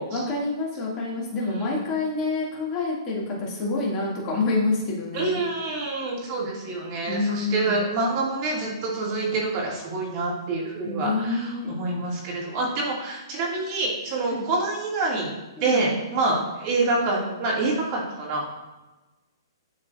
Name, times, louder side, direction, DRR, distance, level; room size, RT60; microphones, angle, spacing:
voice 1, 0.1-5.4 7.1-7.8 10.8-11.8 14.3-14.5 15.6-15.9, left 3 dB, 25° left, -4 dB, 2.2 m, -27 dB
voice 2, 5.1-15.3 15.6-18.6, right 3 dB, 35° right, -3 dB, 2.2 m, -27 dB
11.0 x 3.9 x 2.5 m, 1.1 s
hypercardioid pair, 135°, 2 cm